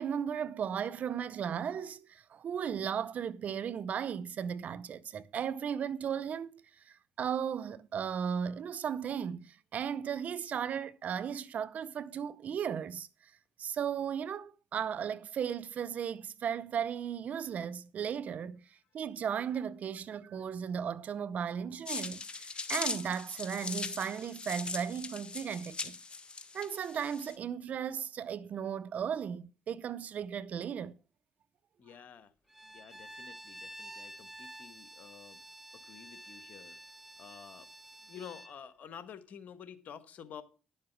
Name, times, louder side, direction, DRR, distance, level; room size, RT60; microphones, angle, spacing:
voice 1, 0.0-13.3 13.6-18.7 18.9-26.0 26.5-31.0, right 8 dB, 60° right, 0.6 m, -36 dB
sound 1, 21.9-27.4, left 4 dB, 35° left, 1.6 m, -40 dB
voice 2, 31.8-32.3 32.7-35.4 35.7-36.8 37.2-37.7 38.1-40.4, left 8 dB, 65° left, 1.3 m, -50 dB
Bowed string instrument, 32.5-38.6, right 1 dB, 5° right, 1.0 m, -50 dB
11.0 x 7.4 x 4.6 m
supercardioid pair, 55°, 3 cm